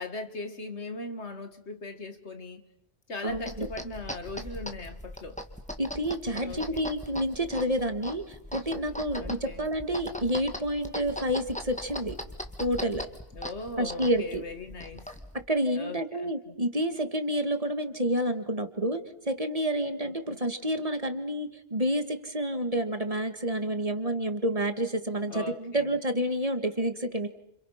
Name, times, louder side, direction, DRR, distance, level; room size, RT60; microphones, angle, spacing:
voice 1, 0.0-2.6 3.1-5.4 6.3-6.8 9.2-9.7 13.3-15.1 15.7-16.5 20.0-20.4 25.2-26.0, left 2 dB, 80° left, 2.4 m, -39 dB
voice 2, 3.2-3.7 5.8-12.2 12.6-13.1 13.8-14.4 15.5-27.3, equal, 30° right, 1.9 m, -29 dB
sound 1, 3.3-15.4, left 1 dB, 5° left, 2.0 m, -40 dB
29.5 x 28.0 x 5.8 m
omnidirectional pair, 1.1 m